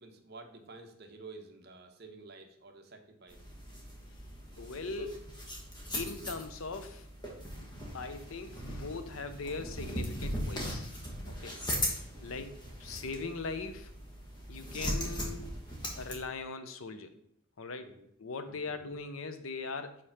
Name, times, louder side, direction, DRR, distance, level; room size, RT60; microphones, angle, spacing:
voice 1, 0.0-3.4 4.8-5.1 12.2-12.4 17.8-18.1 18.4-18.7, right 3 dB, 50° right, 4 dB, 0.9 m, -51 dB
sound 1, 3.3-16.2, equal, 20° left, 1.3 m, -39 dB
voice 2, 4.6-5.1 5.9-7.1 7.5-7.7 7.9-10.9 11.3-11.6 12.2-12.5 12.8-13.9 14.5-15.4 15.9-17.1 17.6-17.9 18.2-20.0, left 4 dB, 80° left, 9 dB, 0.7 m, -40 dB
5.1 x 4.3 x 5.7 m, 0.73 s
head